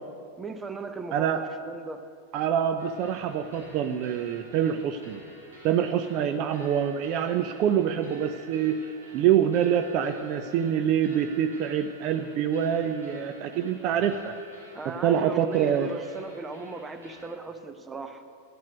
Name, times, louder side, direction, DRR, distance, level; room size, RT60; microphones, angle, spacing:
voice 1, 0.4-2.0 14.7-18.2, right 3 dB, 15° right, 8 dB, 0.9 m, -38 dB
voice 2, 1.1-1.5 2.3-5.2 5.6-14.3 14.8-15.9, right 9 dB, 40° right, 8 dB, 0.5 m, -26 dB
sound 1, 2.8-17.3, right 2 dB, 75° right, 4.1 m, -50 dB
12.0 x 7.4 x 9.4 m, 2.3 s
figure-of-eight pair, 90°, 0 cm